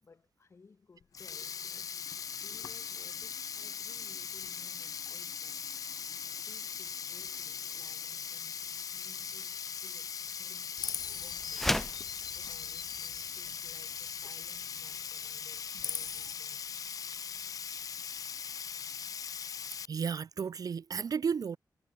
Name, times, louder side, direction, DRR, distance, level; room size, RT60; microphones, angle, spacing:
voice 1, 0.0-1.9 2.2-5.6 6.4-11.8 12.3-16.8, left 4 dB, 40° left, 4.3 m, -60 dB
Sink (filling or washing), 1.0-19.9, left 7 dB, 55° left, 0.4 m, -40 dB
Chirp tweet, 10.8-14.8 15.1-16.3, left 7 dB, 70° left, 1.4 m, -43 dB
sound 1, 11.5-12.1, left 1 dB, 5° left, 0.9 m, -30 dB
voice 2, 19.9-21.6, right 6 dB, 60° right, 1.3 m, -33 dB
wide cardioid pair, 175°, 7 cm